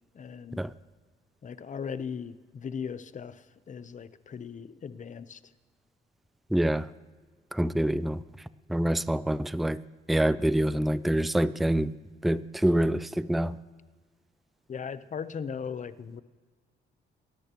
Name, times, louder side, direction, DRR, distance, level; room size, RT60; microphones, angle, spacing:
voice 1, 0.1-0.6 1.4-5.4 14.7-16.2, left 6 dB, 40° left, 14 dB, 0.8 m, -38 dB
voice 2, 6.5-6.9 7.5-8.2 8.7-9.8 10.1-11.9 12.2-13.5, right 1 dB, ahead, 16 dB, 0.4 m, -26 dB
28.0 x 13.5 x 3.0 m, 1.5 s
cardioid pair, 90°, 20 cm